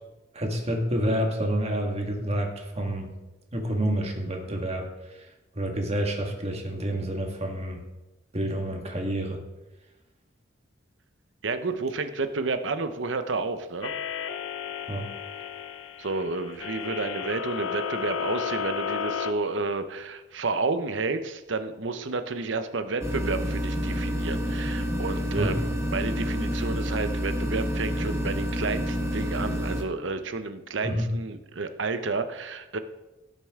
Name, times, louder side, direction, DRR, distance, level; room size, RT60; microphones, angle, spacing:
voice 1, 0.3-3.1 3.5-5.3 5.5-7.8 8.3-9.4 14.9-15.1 25.4-25.6 30.8-31.1, right 1 dB, 35° right, 2 dB, 1.7 m, -28 dB
voice 2, 11.4-13.9 16.0-32.8, right 3 dB, 70° right, 9 dB, 0.8 m, -31 dB
sound 1, 13.8-19.3, left 7 dB, 80° left, 0.6 m, -33 dB
sound 2, 23.0-29.8, equal, 15° right, 1.2 m, -29 dB
17.0 x 6.8 x 3.7 m, 1.0 s
head